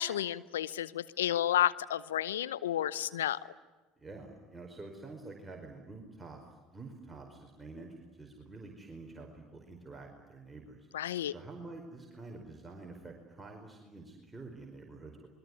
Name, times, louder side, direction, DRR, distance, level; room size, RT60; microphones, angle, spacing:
voice 1, 0.0-3.4 10.9-11.3, left 12 dB, 85° left, 17 dB, 0.8 m, -31 dB
voice 2, 4.0-10.9 11.3-15.3, right 3 dB, 15° right, 1 dB, 4.9 m, -48 dB
26.0 x 23.0 x 9.7 m, 1.2 s
hypercardioid pair, 70°, 0 cm